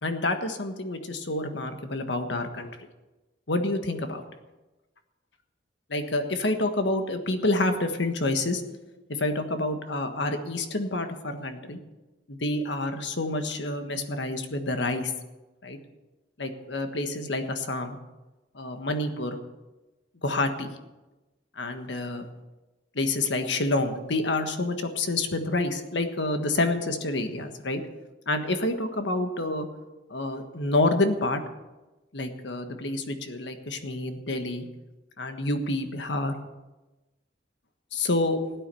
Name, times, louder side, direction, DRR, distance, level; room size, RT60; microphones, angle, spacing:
voice 1, 0.0-2.7 3.5-4.2 5.9-8.6 9.2-11.8 12.3-15.1 15.6-15.8 16.4-18.0 18.5-19.4 20.2-20.7 21.5-22.2 22.9-27.8 28.3-29.7 30.1-31.4 32.1-34.7 35.2-36.3 37.9-38.4, left 2 dB, 70° left, 7 dB, 1.5 m, -28 dB
16.0 x 9.5 x 6.9 m, 1.1 s
head